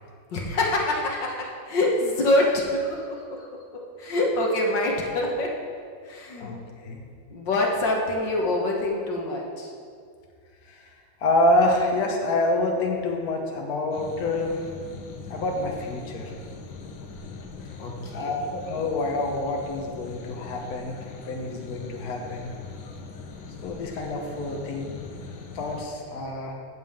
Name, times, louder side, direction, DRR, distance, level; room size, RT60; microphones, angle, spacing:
voice 1, 0.3-5.6 6.0-6.5 7.3-9.7 17.8-18.4, left 1 dB, 70° left, 0 dB, 1.9 m, -26 dB
voice 2, 6.4-7.0 10.7-10.9 11.2-14.6 15.3-16.3 18.1-22.5 23.6-24.9 25.5-26.5, left 2 dB, 55° left, 0 dB, 1.6 m, -27 dB
sound 1, 13.9-25.8, left 4 dB, 85° left, 1.8 m, -41 dB
16.5 x 7.4 x 3.7 m, 2.2 s
omnidirectional pair, 2.1 m